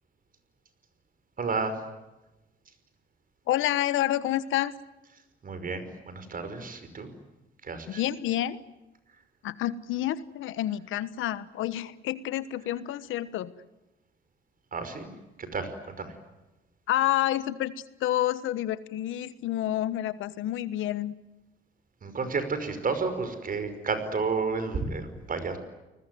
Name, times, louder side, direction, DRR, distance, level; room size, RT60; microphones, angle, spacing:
voice 1, 1.4-1.8 5.4-7.1 7.6-8.0 14.7-15.1 15.4-16.1 22.0-25.6, right 4 dB, 45° right, 10 dB, 5.5 m, -31 dB
voice 2, 3.5-4.7 7.9-8.6 9.4-13.5 16.9-17.7 18.0-21.1, left 13 dB, 85° left, 15 dB, 1.3 m, -29 dB
29.5 x 20.5 x 9.4 m, 1.0 s
cardioid pair, 90°, 20 cm